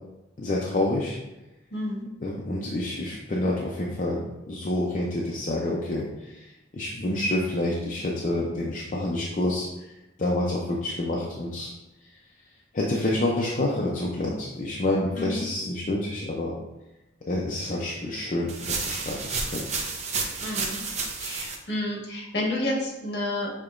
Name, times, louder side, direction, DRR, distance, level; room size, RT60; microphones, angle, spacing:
voice 1, 0.4-1.2 2.2-6.5 6.7-9.9 10.2-11.7 12.7-16.5 17.3-19.7, left 1 dB, 45° left, -4 dB, 0.5 m, -28 dB
voice 2, 1.7-2.0 15.1-15.5 20.4-20.8 21.2-23.5, left 1 dB, 65° left, -2 dB, 1.4 m, -30 dB
sound 1, 18.5-21.6, right 4 dB, 40° right, 0.5 m, -31 dB
6.4 x 2.9 x 2.5 m, 0.96 s
head